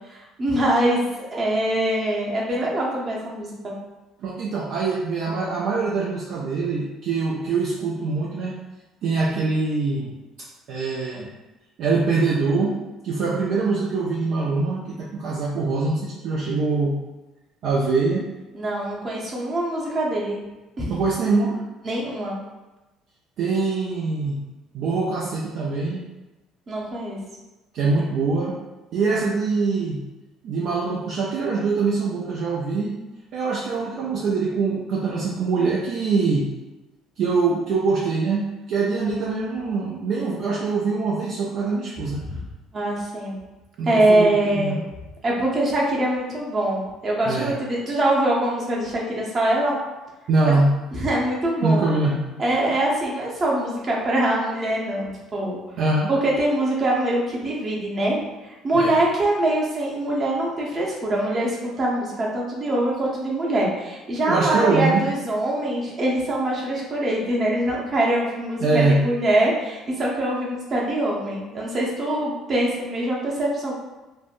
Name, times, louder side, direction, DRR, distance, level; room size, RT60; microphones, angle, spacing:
voice 1, 0.1-3.7 18.5-20.4 20.8-21.0 21.8-22.4 26.7-27.2 38.9-39.0 42.2-42.4 42.7-43.4 43.9-44.9 45.2-49.8 50.9-51.9 52.4-55.6 56.1-73.7, right 1 dB, 40° right, -3 dB, 0.9 m, -23 dB
voice 2, 4.2-8.6 9.0-10.1 10.7-11.3 11.8-12.8 13.0-17.0 17.6-18.3 20.9-21.6 23.4-24.4 24.7-26.0 27.7-28.6 28.9-30.0 30.4-33.0 33.3-36.5 37.2-42.2 43.8-44.8 47.3-47.5 50.3-50.8 51.6-52.2 55.8-56.1 58.7-59.0 64.3-65.1 68.6-69.0, right 3 dB, 60° right, -4 dB, 0.4 m, -23 dB
3.3 x 2.1 x 2.5 m, 1.1 s
hypercardioid pair, 60°, 0 cm